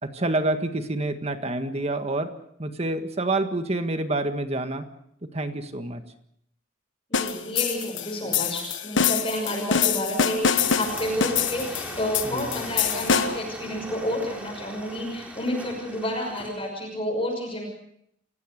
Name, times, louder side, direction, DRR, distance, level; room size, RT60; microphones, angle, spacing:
voice 1, 0.0-2.3 2.6-4.8 5.3-6.0 12.2-12.4, right 2 dB, 35° right, 8 dB, 1.7 m, -27 dB
sound 1, 7.1-13.5, left 7 dB, 70° left, 1.2 m, -25 dB
voice 2, 7.1-17.7, equal, 30° left, 0 dB, 6.1 m, -30 dB
sound 2, 10.5-16.7, equal, 5° right, 4.0 m, -39 dB
28.0 x 16.5 x 6.6 m, 0.72 s
head